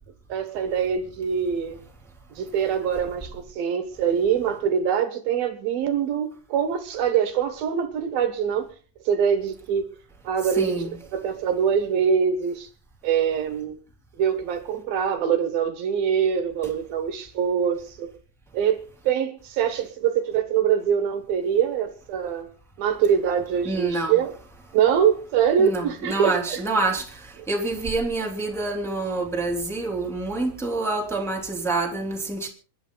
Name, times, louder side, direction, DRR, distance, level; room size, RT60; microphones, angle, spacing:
voice 1, 0.3-1.8 2.4-8.7 9.1-9.9 10.2-10.8 11.1-12.7 13.0-13.8 14.2-18.1 18.5-22.5 22.8-24.3 24.7-26.6, right 8 dB, 65° right, 2.8 m, -24 dB
voice 2, 10.4-11.0 23.6-24.2 25.6-27.1 27.5-32.5, right 2 dB, ahead, 2.1 m, -27 dB
27.0 x 11.5 x 4.0 m
omnidirectional pair, 5.3 m